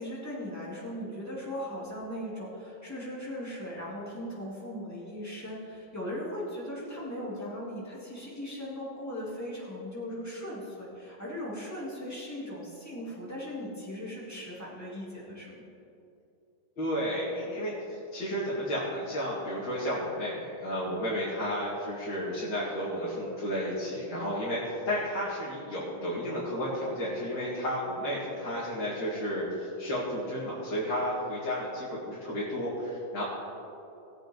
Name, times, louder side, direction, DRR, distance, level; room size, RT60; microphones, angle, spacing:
voice 1, 0.0-15.6, equal, 5° left, -7 dB, 3.1 m, -38 dB
voice 2, 16.8-33.2, equal, 65° left, -8 dB, 2.9 m, -32 dB
19.0 x 8.1 x 4.0 m, 2.8 s
omnidirectional pair, 2.2 m